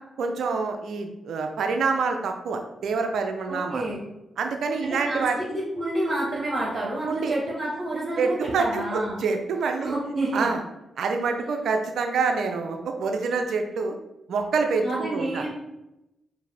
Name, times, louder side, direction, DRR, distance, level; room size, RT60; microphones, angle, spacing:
voice 1, 0.2-3.8 4.4-5.4 7.0-7.3 8.2-9.9 10.3-10.6 11.0-14.0 14.3-14.9 15.1-15.4, right 4 dB, 75° right, 4 dB, 0.4 m, -26 dB
voice 2, 3.5-4.0 4.8-9.2 9.8-10.5 14.8-15.6, right 1 dB, 45° right, -5 dB, 1.2 m, -29 dB
4.5 x 2.6 x 3.3 m, 0.91 s
supercardioid pair, 40°, 0 cm